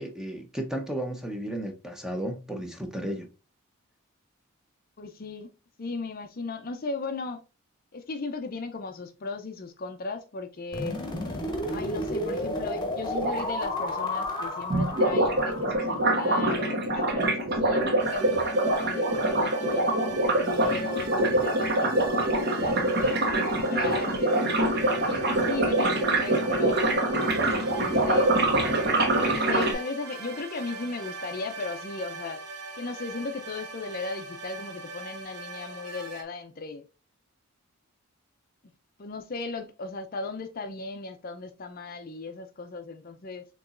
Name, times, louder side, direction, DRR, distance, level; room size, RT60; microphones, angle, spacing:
voice 1, 0.0-3.3, right 1 dB, ahead, 0.7 m, -34 dB
voice 2, 5.0-5.5 5.8-7.4 7.9-11.0 11.7-19.9 20.3-23.2 23.7-24.4 24.7-26.9 27.7-28.4 29.3-32.4 32.8-36.8 39.0-43.5, left 3 dB, 40° left, 0.5 m, -36 dB
sound 1, 10.7-16.7, left 1 dB, 20° left, 0.9 m, -32 dB
sound 2, 13.1-13.4 14.7-29.7, right 2 dB, 45° right, 1.0 m, -25 dB
sound 3, 18.0-36.2, right 3 dB, 75° right, 1.0 m, -41 dB
6.7 x 3.0 x 2.5 m
head